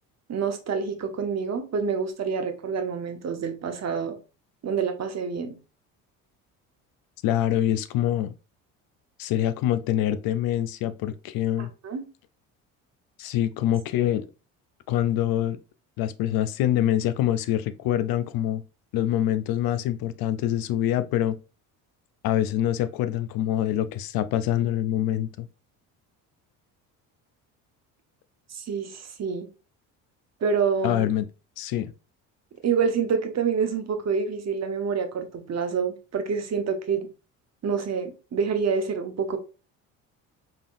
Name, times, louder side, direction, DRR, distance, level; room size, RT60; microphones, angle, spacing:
voice 1, 0.3-4.2 4.6-5.5 11.6-12.0 28.5-29.5 30.4-31.1 32.6-37.1 37.6-39.4, right 6 dB, 40° right, 1.0 m, -27 dB
voice 2, 7.2-8.3 9.2-11.7 13.2-14.3 14.9-15.6 16.0-18.6 18.9-21.4 22.2-25.5 30.8-31.2 31.6-31.9, left 12 dB, 60° left, 0.5 m, -25 dB
3.7 x 3.6 x 2.5 m
supercardioid pair, 70°, 40 cm